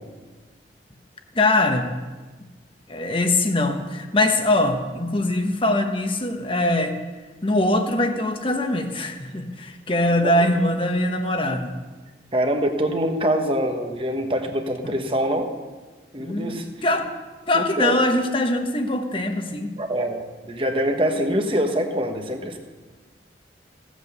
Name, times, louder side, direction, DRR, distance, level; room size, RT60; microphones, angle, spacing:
voice 1, 1.3-1.9 2.9-6.9 7.4-11.7 14.8-14.9 16.2-17.1 17.5-19.7, left 1 dB, 30° left, 6 dB, 1.1 m, -22 dB
voice 2, 12.3-15.5 16.1-16.7 17.5-18.0 19.8-22.6, right 1 dB, 30° right, 5 dB, 1.2 m, -24 dB
16.0 x 8.2 x 6.8 m, 1.3 s
head